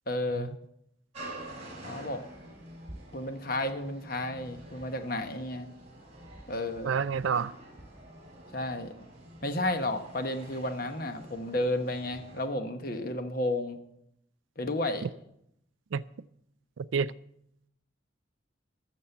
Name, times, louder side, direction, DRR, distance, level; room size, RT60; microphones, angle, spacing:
voice 1, 0.1-0.5 1.8-2.2 3.1-5.7 6.5-7.0 8.5-8.9 9.4-13.8 14.6-15.1, left 1 dB, 45° left, 1.1 m, -32 dB
sound 1, 1.1-12.4, right 1 dB, 35° right, 3.8 m, -48 dB
voice 2, 6.8-7.6 15.0-15.1 15.9-16.0 16.8-17.1, right 6 dB, 70° right, 0.4 m, -29 dB
12.5 x 7.3 x 7.0 m
head